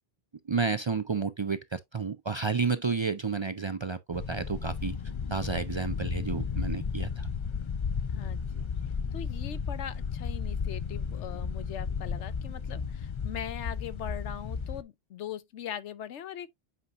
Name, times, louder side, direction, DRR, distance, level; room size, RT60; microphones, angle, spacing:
voice 1, 0.5-5.0 5.3-7.3, right 5 dB, 50° right, 0.3 m, -31 dB
sound 1, 4.1-14.8, left 6 dB, 55° left, 0.3 m, -34 dB
voice 2, 8.1-8.7 9.1-16.5, left 9 dB, 85° left, 1.0 m, -40 dB
8.3 x 5.4 x 2.5 m
omnidirectional pair, 1.2 m